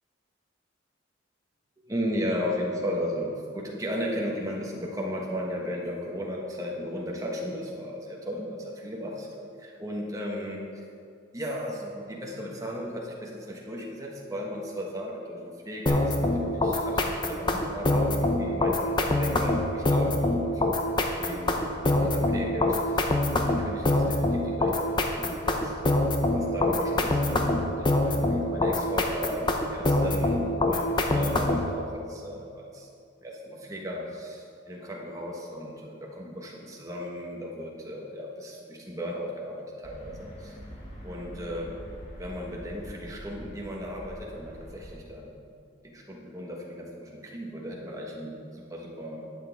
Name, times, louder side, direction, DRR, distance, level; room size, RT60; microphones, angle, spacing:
voice 1, 1.8-10.8 11.3-20.6 21.0-21.5 21.8-23.1 23.4-26.0 26.3-32.9 33.2-40.6 41.0-41.7 42.2-45.3 45.8-49.3, equal, 15° right, -2 dB, 1.2 m, -35 dB
sound 1, 15.9-31.7, left 2 dB, 25° left, 0.6 m, -25 dB
sound 2, 39.8-44.9, equal, 40° left, 2.0 m, -44 dB
11.5 x 8.2 x 3.5 m, 2.4 s
head